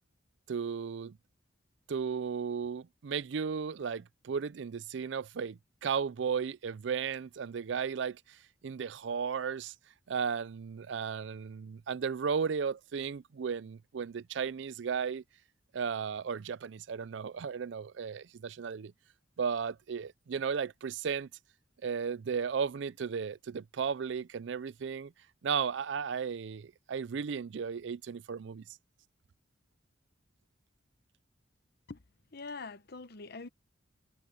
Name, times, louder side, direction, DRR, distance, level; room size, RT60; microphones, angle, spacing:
voice 1, 0.5-1.2 1.9-9.7 10.1-15.2 15.7-18.9 19.4-21.3 21.8-25.1 25.4-28.6, right 6 dB, 70° right, 0.4 m, -35 dB
voice 2, 32.3-33.5, left 3 dB, 55° left, 0.9 m, -43 dB
head